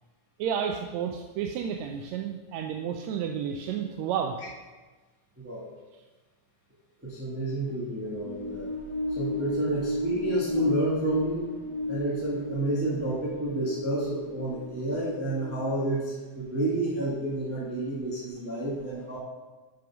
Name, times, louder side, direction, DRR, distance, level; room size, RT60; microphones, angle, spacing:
voice 1, 0.4-4.4, right 8 dB, 80° right, 3 dB, 1.7 m, -31 dB
voice 2, 5.4-5.7 7.0-8.7 9.1-11.5 11.9-19.2, right 2 dB, 10° right, -6 dB, 0.8 m, -30 dB
sound 1, 8.0-15.7, left 1 dB, 45° left, 2.5 m, -33 dB
7.7 x 5.2 x 6.0 m, 1.3 s
omnidirectional pair, 3.4 m